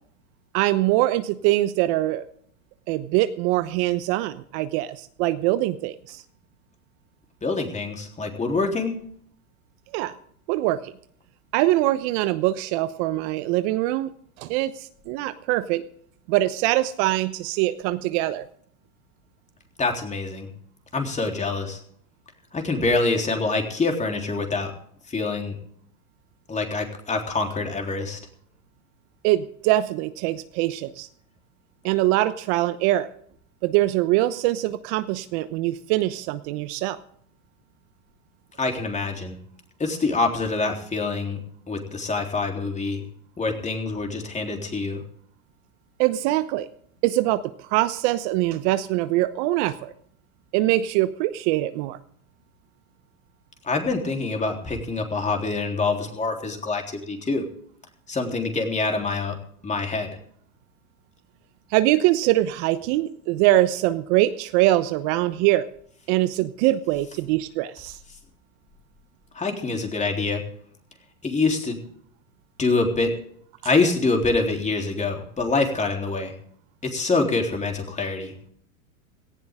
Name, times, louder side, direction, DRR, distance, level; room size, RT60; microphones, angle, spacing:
voice 1, 0.5-2.2 2.9-6.2 9.9-10.1 10.5-10.9 11.5-14.1 14.4-15.8 16.3-18.4 29.2-31.1 31.8-33.1 33.6-37.0 46.0-46.7 47.0-47.4 47.7-49.9 50.5-52.0 61.7-65.7 66.1-68.0, right 16 dB, 50° right, 12 dB, 1.1 m, -23 dB
voice 2, 7.4-9.0 19.8-20.5 20.9-21.8 22.5-24.7 25.1-25.6 26.5-28.2 38.6-39.4 39.8-41.4 41.7-43.0 43.4-45.0 53.6-57.4 58.1-59.4 59.6-60.2 69.3-70.4 71.2-71.8 72.6-73.1 73.6-76.3 76.8-78.3, left 3 dB, 15° left, 3 dB, 3.7 m, -25 dB
17.5 x 16.0 x 3.7 m, 0.63 s
hypercardioid pair, 110°, 43 cm